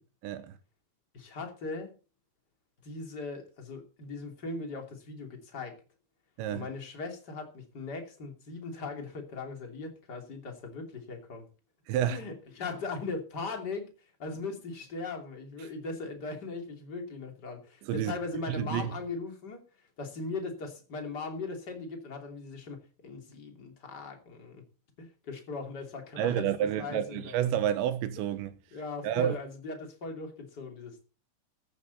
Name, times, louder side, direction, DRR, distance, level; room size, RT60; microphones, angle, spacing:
voice 1, 0.2-0.6 6.4-6.7 11.9-12.2 17.8-18.1 18.5-18.9 26.2-28.6 29.0-29.4, right 10 dB, 75° right, 3.1 m, -29 dB
voice 2, 1.1-1.9 2.8-5.8 6.5-11.5 12.1-13.9 14.2-24.6 25.0-27.3 28.7-31.0, left 3 dB, 25° left, 2.4 m, -39 dB
14.5 x 12.5 x 4.1 m
omnidirectional pair, 5.7 m